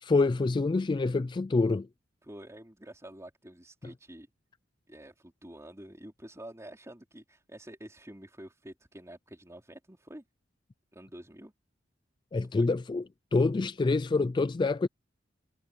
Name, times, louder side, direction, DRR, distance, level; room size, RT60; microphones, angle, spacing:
voice 1, 0.0-1.9 12.3-13.0 13.3-14.9, left 3 dB, 25° left, 0.3 m, -26 dB
voice 2, 2.2-4.3 4.9-10.2 10.9-11.5 12.5-12.7, right 1 dB, 15° right, 4.0 m, -48 dB
head